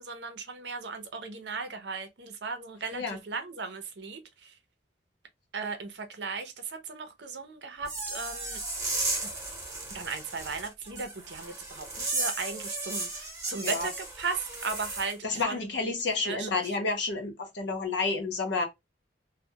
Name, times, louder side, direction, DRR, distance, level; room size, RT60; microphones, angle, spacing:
voice 1, 0.0-4.5 5.5-8.6 9.2-9.3 9.9-15.9 16.2-16.6, right 4 dB, 70° right, 0.6 m, -37 dB
sound 1, 7.8-15.1, right 2 dB, 15° right, 0.8 m, -35 dB
voice 2, 15.2-18.7, left 3 dB, 75° left, 0.7 m, -30 dB
2.2 x 2.1 x 2.7 m
head